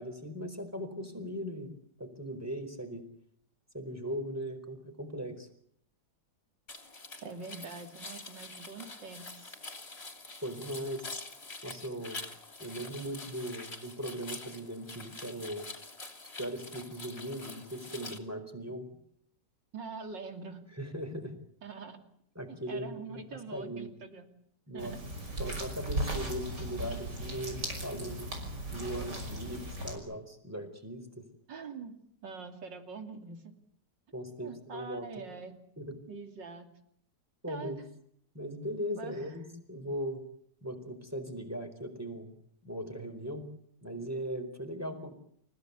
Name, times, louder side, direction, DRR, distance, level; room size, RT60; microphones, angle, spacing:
voice 1, 0.0-1.7 2.0-3.0 3.7-5.5 10.4-11.0 11.6-12.2 12.6-15.7 16.4-18.9 20.8-21.3 22.3-23.9 24.7-25.0 25.4-28.3 28.7-31.2 34.1-35.1 35.8-36.0 37.4-37.8 38.3-39.4 39.7-40.2 40.6-42.3 42.6-43.5 43.8-45.2, equal, 10° right, 7 dB, 4.4 m, -39 dB
sound 1, 6.7-18.2, left 3 dB, 35° left, 3.3 m, -46 dB
voice 2, 7.2-9.6 19.7-20.7 21.6-22.0 22.5-24.3 24.7-25.0 31.5-32.0 32.2-33.5 34.4-35.6 36.1-36.7 37.5-37.8 38.8-39.2, right 4 dB, 90° right, 7 dB, 3.4 m, -44 dB
sound 2, 24.8-30.0, right 1 dB, 70° right, 6.5 m, -37 dB
29.5 x 16.5 x 8.3 m, 0.66 s
omnidirectional pair, 1.9 m